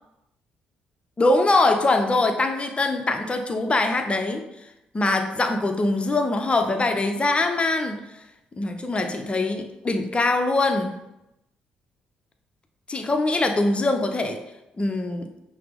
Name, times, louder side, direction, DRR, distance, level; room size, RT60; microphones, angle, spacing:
voice 1, 1.2-4.4 4.9-8.0 8.5-10.9 12.9-14.4 14.8-15.3, left 2 dB, 25° left, 6 dB, 0.6 m, -23 dB
5.7 x 2.0 x 3.4 m, 0.92 s
hypercardioid pair, 45°, 4 cm